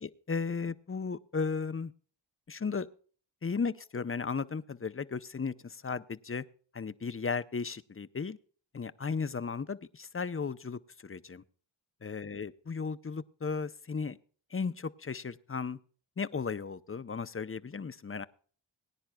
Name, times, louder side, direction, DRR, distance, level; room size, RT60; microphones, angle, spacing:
voice 1, 0.0-1.9 2.5-2.9 3.4-6.5 6.7-8.4 8.7-11.4 12.0-14.2 14.5-15.8 16.2-18.3, left 5 dB, 30° left, 15 dB, 0.6 m, -35 dB
21.5 x 10.0 x 2.3 m, 0.43 s
cardioid pair, 50°, 45 cm